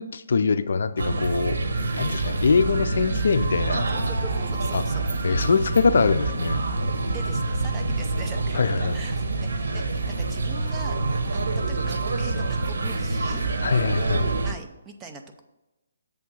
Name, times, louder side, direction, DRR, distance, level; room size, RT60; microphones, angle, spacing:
voice 1, 0.0-1.6 2.0-3.8 4.7-4.8 5.2-6.6 8.5-9.0 13.6-14.3, left 5 dB, 65° left, 12 dB, 0.4 m, -23 dB
sound 1, 1.0-14.5, right 3 dB, 75° right, 1.0 m, -26 dB
voice 2, 4.2-5.1 7.0-13.4 14.4-15.4, right 4 dB, 15° right, 3 dB, 0.5 m, -42 dB
7.6 x 3.5 x 6.2 m, 0.98 s
hypercardioid pair, 165°, 0 cm